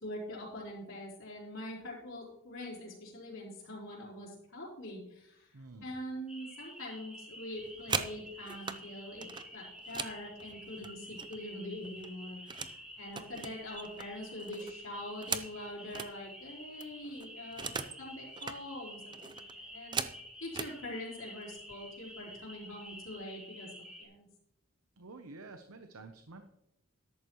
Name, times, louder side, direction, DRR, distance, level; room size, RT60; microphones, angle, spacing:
voice 1, 0.0-5.5 5.8-9.3 9.5-17.7 18.0-20.0 20.4-23.7 24.0-24.3, left 1 dB, 65° left, -7 dB, 4.0 m, -44 dB
voice 2, 5.5-5.9 25.0-26.5, right 3 dB, 80° right, 6 dB, 0.9 m, -50 dB
sound 1, 6.3-24.0, equal, 5° right, 2.7 m, -50 dB
sound 2, 7.5-8.8 9.2-11.5 11.8-12.8 13.1-16.1 16.5-16.6 16.8-18.0 18.3-18.6 19.1-20.8 21.6-21.7 22.1-22.4 22.7-23.2, right 5 dB, 20° right, 0.5 m, -40 dB
13.5 x 11.0 x 3.1 m, 0.82 s
head